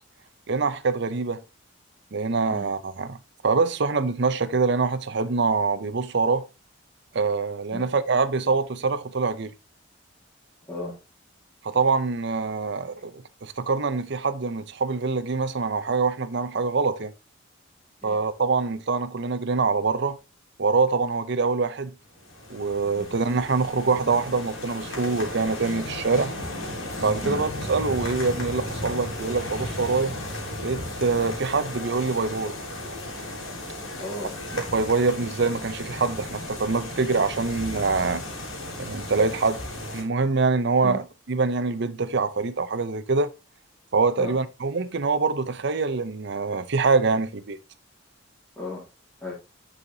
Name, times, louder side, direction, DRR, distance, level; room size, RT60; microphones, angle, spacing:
voice 1, 0.5-1.4 2.1-3.2 3.4-6.4 7.1-9.5 11.6-17.1 18.0-20.2 20.6-21.9 22.5-26.3 27.0-30.2 30.6-32.5 34.5-38.2 38.8-39.6 39.9-43.3 43.9-47.6, right 4 dB, 60° right, 0.7 m, -24 dB
voice 2, 10.7-11.0 18.0-18.2 22.9-23.1 27.2-27.4 34.0-34.4 40.8-41.0 44.2-44.4 48.6-48.8 49.2-49.3, left 1 dB, 10° left, 2.2 m, -34 dB
sound 1, 22.1-40.0, left 1 dB, 85° left, 3.4 m, -35 dB
9.6 x 5.7 x 2.8 m
head